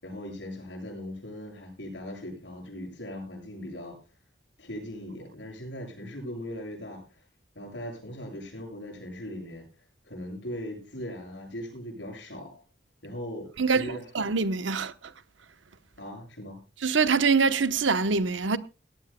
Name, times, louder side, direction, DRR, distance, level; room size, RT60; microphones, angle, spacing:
voice 1, 0.0-4.0 4.6-7.2 7.6-9.7 10.0-12.6 13.0-14.1 16.0-16.6, left 1 dB, 75° left, 7.6 m, -39 dB
voice 2, 13.6-14.9 16.8-18.6, right 4 dB, 90° right, 0.9 m, -24 dB
18.0 x 16.5 x 2.2 m
head